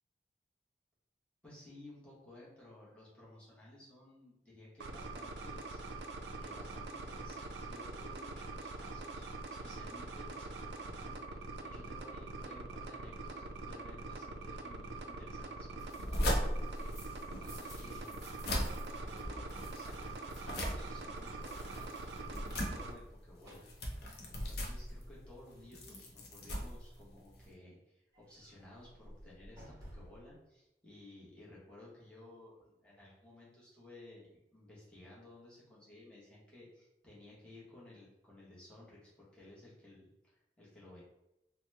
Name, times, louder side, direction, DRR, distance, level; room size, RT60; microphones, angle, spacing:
voice 1, 1.4-9.3 9.6-17.0 17.4-18.2 18.9-23.6 24.3-41.0, left 1 dB, 5° left, -8 dB, 0.9 m, -56 dB
sound 1, 4.8-22.9, right 3 dB, 75° right, 0.3 m, -44 dB
sound 2, 15.8-27.5, equal, 60° left, 0.5 m, -39 dB
sound 3, 16.6-19.2 19.5-25.1 28.1-30.4, right 1 dB, 20° right, 0.7 m, -57 dB
2.9 x 2.1 x 3.2 m, 0.92 s
head